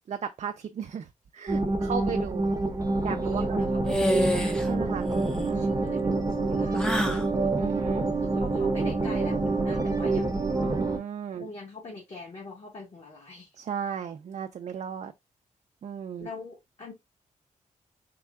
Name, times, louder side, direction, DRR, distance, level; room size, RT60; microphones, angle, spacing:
voice 1, 0.1-1.1 1.3-2.5 3.0-3.7 4.7-5.1 5.4-6.0 7.6-8.1 10.6-11.5 13.6-15.1 15.8-16.3, right 7 dB, 55° right, 0.4 m, -35 dB
sound 1, 1.5-11.0, right 3 dB, 25° right, 0.8 m, -27 dB
voice 2, 1.6-2.2 3.1-4.6 5.5-7.3 8.2-10.5 11.4-13.5 16.2-16.9, left 3 dB, 50° left, 1.2 m, -43 dB
sound 2, 3.9-4.7 5.0-5.5 6.7-7.3, left 1 dB, 5° left, 0.5 m, -28 dB
3.7 x 2.2 x 3.3 m
wide cardioid pair, 105°, 14 cm